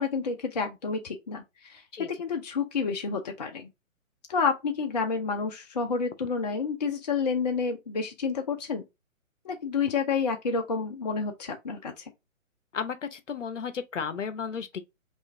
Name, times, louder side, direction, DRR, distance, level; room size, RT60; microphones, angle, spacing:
voice 1, 0.0-3.7 4.3-8.8 9.4-12.1, left 5 dB, 30° left, 0.5 m, -29 dB
voice 2, 12.7-14.8, left 6 dB, 60° left, 0.8 m, -33 dB
5.5 x 2.5 x 2.6 m
figure-of-eight pair, 135°, 41 cm